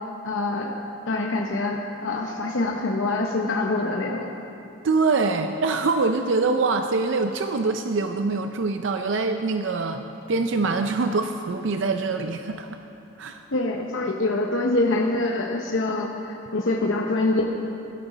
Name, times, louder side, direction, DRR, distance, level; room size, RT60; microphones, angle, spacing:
voice 1, 0.2-0.7 1.1-4.3 13.5-17.4, left 2 dB, 70° left, 1 dB, 0.8 m, -25 dB
voice 2, 4.8-12.8 13.2-13.4, right 3 dB, 65° right, 6 dB, 0.5 m, -24 dB
16.5 x 11.0 x 4.1 m, 3.0 s
head